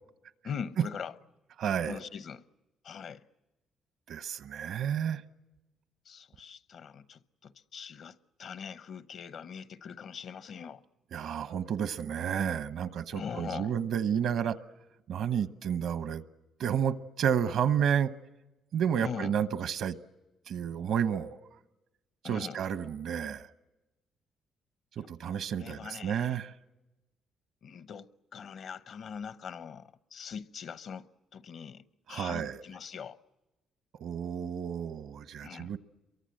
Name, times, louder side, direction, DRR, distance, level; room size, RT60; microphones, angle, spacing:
voice 1, 0.4-1.1 1.8-2.4 2.8-3.2 6.0-10.8 13.1-13.7 19.0-19.3 22.2-22.6 25.0-26.4 27.6-33.2 35.4-35.7, left 7 dB, 55° left, 0.8 m, -42 dB
voice 2, 1.6-2.0 4.1-5.2 11.1-14.6 15.1-16.2 16.6-18.1 18.7-20.0 20.5-21.4 22.2-23.5 25.0-26.5 32.1-32.6 34.0-35.8, right 8 dB, 65° right, 1.0 m, -31 dB
27.5 x 23.5 x 7.8 m
cardioid pair, 120°, 0 cm